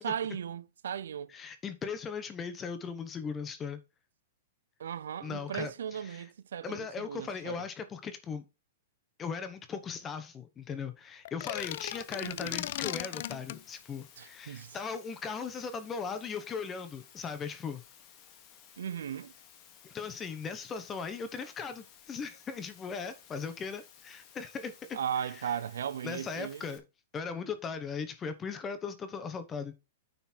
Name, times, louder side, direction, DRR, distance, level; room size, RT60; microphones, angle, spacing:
voice 1, 0.0-1.3 4.8-7.6 12.2-12.6 14.2-14.8 18.8-19.3 24.9-26.7, right 8 dB, 80° right, 0.5 m, -37 dB
voice 2, 1.3-3.8 5.2-6.2 6.6-8.5 9.2-17.8 19.8-25.6 26.0-26.8 27.1-29.7, left 5 dB, 15° left, 1.1 m, -38 dB
sound 1, 11.3-13.6, left 14 dB, 55° left, 0.4 m, -37 dB
Water, 11.6-26.8, left 8 dB, 30° left, 1.6 m, -57 dB
9.3 x 4.2 x 4.5 m
hypercardioid pair, 150°, 0 cm